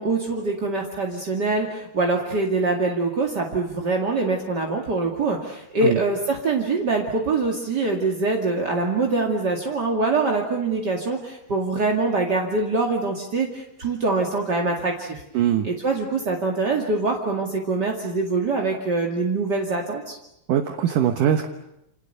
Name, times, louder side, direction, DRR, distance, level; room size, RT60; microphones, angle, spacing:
voice 1, 0.0-15.2 15.6-20.2, right 3 dB, 35° right, 0 dB, 1.7 m, -24 dB
voice 2, 15.3-15.7 20.5-21.5, right 10 dB, 70° right, 6 dB, 2.0 m, -21 dB
29.0 x 28.5 x 6.8 m, 0.86 s
omnidirectional pair, 5.3 m